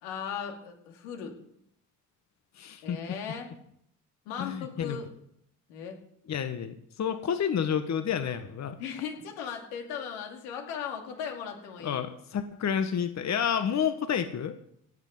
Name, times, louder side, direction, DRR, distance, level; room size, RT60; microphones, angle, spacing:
voice 1, 0.0-1.4 2.8-3.5 4.3-5.1 5.7-6.0 8.8-12.0, left 7 dB, 85° left, 3 dB, 2.5 m, -37 dB
voice 2, 2.6-3.0 4.4-5.0 6.3-8.8 11.8-14.6, left 8 dB, 45° left, 9 dB, 1.2 m, -30 dB
17.5 x 7.4 x 5.4 m, 0.73 s
hypercardioid pair, 55°, 37 cm